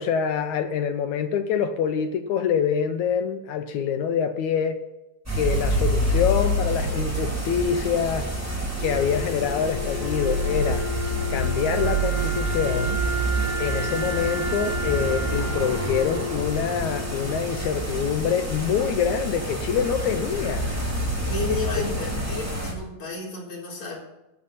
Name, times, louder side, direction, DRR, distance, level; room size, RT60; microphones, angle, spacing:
voice 1, 0.0-4.8 5.4-8.3 8.8-10.9 11.3-13.0 13.6-20.7 21.8-21.9, left 7 dB, 75° left, 8 dB, 1.9 m, -25 dB
sound 1, 5.3-22.7, right 1 dB, 5° right, 2.3 m, -27 dB
Wind instrument woodwind instrument, 8.8-17.8, equal, 60° right, 1.4 m, -33 dB
voice 2, 21.2-24.0, left 2 dB, 55° left, -3 dB, 5.1 m, -32 dB
14.0 x 11.0 x 4.2 m, 0.95 s
omnidirectional pair, 3.9 m